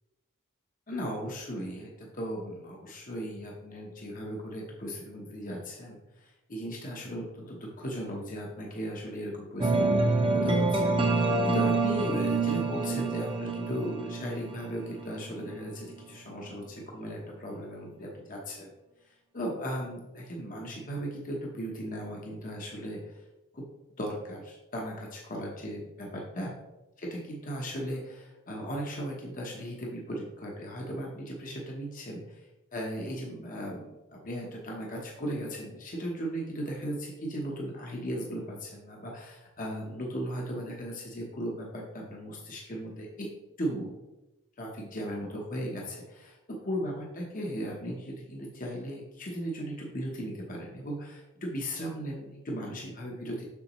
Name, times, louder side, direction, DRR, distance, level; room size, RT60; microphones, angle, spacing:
voice 1, 0.9-18.7 19.1-23.2 23.5-23.6 24.0-26.5 27.0-43.3 43.6-43.9 44.6-46.3 46.7-53.4, equal, 35° left, -1 dB, 0.9 m, -37 dB
sound 1, 9.6-15.5, right 3 dB, 25° right, 0.7 m, -27 dB
6.8 x 6.3 x 3.0 m, 1.0 s
head